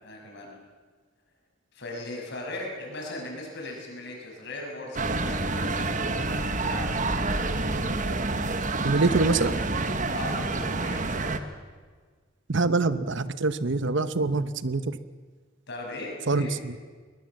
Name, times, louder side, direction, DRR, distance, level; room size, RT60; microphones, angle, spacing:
voice 1, 0.0-0.5 1.7-5.9 6.6-7.0 10.1-11.4 15.7-16.5, left 2 dB, 60° left, 0 dB, 6.7 m, -38 dB
sound 1, 4.9-11.4, right 2 dB, 40° right, 1.3 m, -28 dB
voice 2, 8.8-9.6 12.5-15.0 16.3-16.8, right 3 dB, 65° right, 14 dB, 0.9 m, -25 dB
21.5 x 21.0 x 7.8 m, 1.5 s
head